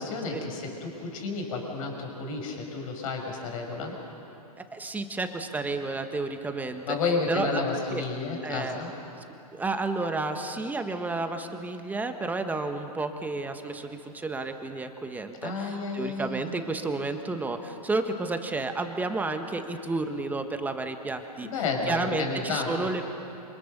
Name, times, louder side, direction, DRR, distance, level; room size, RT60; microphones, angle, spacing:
voice 1, 0.0-3.9 6.9-8.9 15.4-16.5 21.4-22.9, left 4 dB, 55° left, 2 dB, 6.5 m, -31 dB
voice 2, 4.6-6.8 7.3-8.0 8.4-8.8 9.5-21.5 21.9-23.0, right 3 dB, 10° right, 6 dB, 1.5 m, -31 dB
28.0 x 26.0 x 6.8 m, 2.8 s
hypercardioid pair, 130°, 21 cm